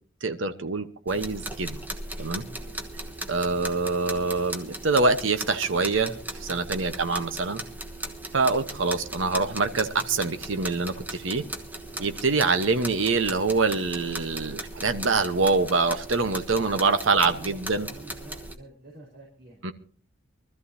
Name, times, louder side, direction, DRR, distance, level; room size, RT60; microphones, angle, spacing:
voice 1, 0.2-1.8 2.2-2.4 3.3-7.6 8.3-11.5 12.0-17.9 19.6-19.7, right 3 dB, 70° right, 10 dB, 1.0 m, -25 dB
sound 1, 1.1-18.5, right 1 dB, 10° right, 1.2 m, -38 dB
voice 2, 2.3-2.8 11.9-12.1 16.5-19.6, right 1 dB, 50° right, -1 dB, 4.5 m, -49 dB
24.0 x 13.5 x 2.7 m, 0.43 s
head